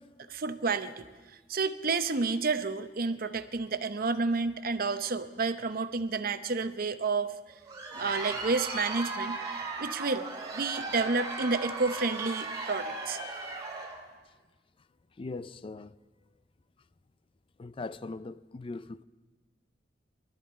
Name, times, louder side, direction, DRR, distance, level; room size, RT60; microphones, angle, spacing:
voice 1, 0.3-1.1 1.5-7.3 8.0-9.4 9.8-10.3 10.5-13.2, right 4 dB, 55° right, 0.8 m, -30 dB
Crowd, 7.5-14.1, right 3 dB, 20° right, 2.4 m, -37 dB
voice 2, 7.8-8.2 13.8-13.9 14.8-14.9 15.1-16.0 17.6-19.0, left 3 dB, 30° left, 0.4 m, -41 dB
23.0 x 13.0 x 4.4 m
head